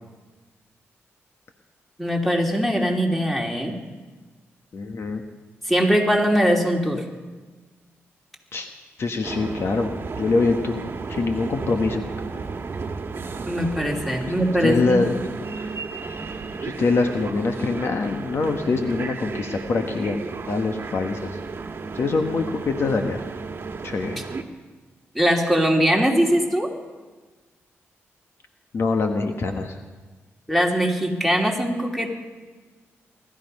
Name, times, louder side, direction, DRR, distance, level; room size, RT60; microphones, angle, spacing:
voice 1, 2.0-3.7 5.7-7.0 13.5-15.0 25.1-26.7 30.5-32.2, equal, ahead, 1 dB, 2.9 m, -21 dB
voice 2, 4.7-5.2 8.5-8.7 9.0-9.9 10.2-10.8 11.1-12.0 14.6-15.7 16.6-20.2 20.5-21.4 21.9-23.2 23.8-24.2 28.7-29.8, left 3 dB, 55° left, 5 dB, 1.3 m, -24 dB
sound 1, 9.2-24.4, right 4 dB, 50° right, 1.4 m, -33 dB
20.5 x 13.0 x 5.4 m, 1.3 s
cardioid pair, 75°, 5 cm